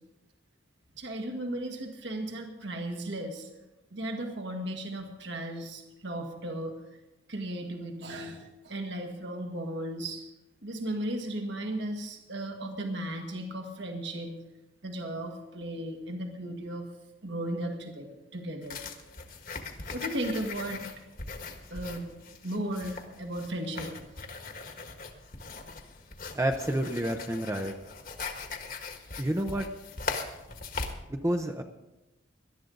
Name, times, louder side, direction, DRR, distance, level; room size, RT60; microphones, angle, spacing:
voice 1, 0.9-3.5 3.9-6.7 7.3-10.3 10.6-14.3 14.8-16.9 17.2-18.8 19.9-20.8 21.7-22.1 22.4-23.9, right 1 dB, 65° right, 3 dB, 1.7 m, -35 dB
sound 1, 18.6-30.9, left 4 dB, 50° left, 1.6 m, -40 dB
voice 2, 26.3-27.7 29.2-29.7 31.1-31.6, right 1 dB, 15° right, 4 dB, 0.6 m, -29 dB
18.5 x 12.0 x 3.9 m, 1.0 s
head